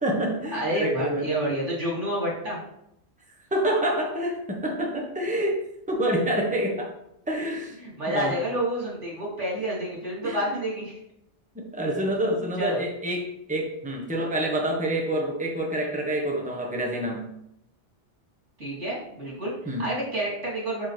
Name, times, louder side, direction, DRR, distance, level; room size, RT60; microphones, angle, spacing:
voice 1, 0.0-1.3 3.5-6.9 7.3-7.8 8.1-8.3 10.2-10.4 11.5-17.3 19.6-19.9, right 1 dB, 5° right, -1 dB, 1.3 m, -27 dB
voice 2, 0.5-2.6 7.8-11.0 12.6-12.8 18.6-20.9, right 1 dB, 80° right, -7 dB, 3.7 m, -29 dB
12.5 x 4.2 x 3.4 m, 0.79 s
omnidirectional pair, 1.2 m